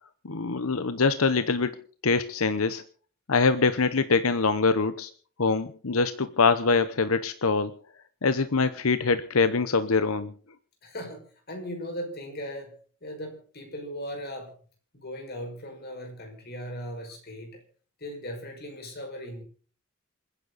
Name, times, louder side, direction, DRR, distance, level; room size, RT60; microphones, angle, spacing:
voice 1, 0.2-2.8 3.3-5.1 5.4-7.8 8.2-10.3, left 4 dB, 85° left, 12 dB, 0.9 m, -24 dB
voice 2, 10.8-12.7 13.0-14.5 14.9-17.6 18.0-19.4, equal, 50° left, 3 dB, 5.7 m, -38 dB
27.5 x 10.0 x 4.1 m, 0.42 s
head